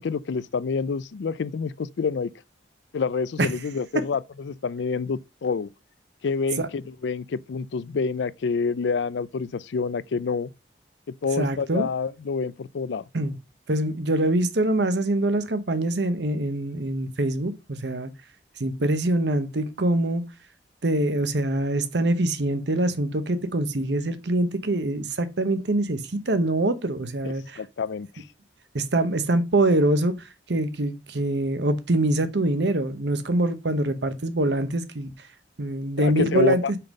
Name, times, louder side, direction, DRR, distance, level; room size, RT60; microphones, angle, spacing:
voice 1, 0.0-2.3 2.9-5.7 6.2-10.5 11.2-13.0 27.6-28.2 36.0-36.6, left 5 dB, 75° left, 0.4 m, -27 dB
voice 2, 11.4-11.9 13.1-13.4 13.7-18.1 18.6-20.3 20.8-27.6 28.7-35.1 35.6-36.8, right 1 dB, 70° right, 0.9 m, -24 dB
5.7 x 5.2 x 5.2 m
head